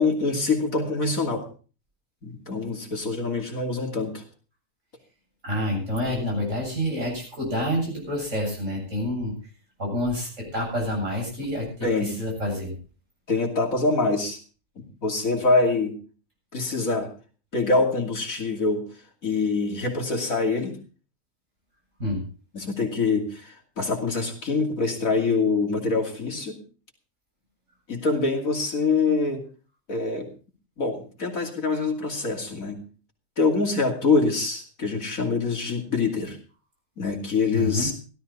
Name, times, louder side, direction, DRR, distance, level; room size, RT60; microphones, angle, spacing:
voice 1, 0.0-1.5 2.2-4.2 11.4-11.5 11.8-12.1 13.3-14.4 14.8-16.0 16.5-17.1 17.5-18.8 19.2-20.7 22.5-26.6 27.9-29.4 29.9-30.3 30.8-32.8 33.4-36.4 37.0-37.9, left 3 dB, 65° left, 2 dB, 3.1 m, -25 dB
voice 2, 5.4-9.3 9.8-12.7 22.0-22.2 37.5-37.9, left 1 dB, 55° right, -1 dB, 8.3 m, -28 dB
16.0 x 13.0 x 4.1 m, 0.37 s
omnidirectional pair, 1.5 m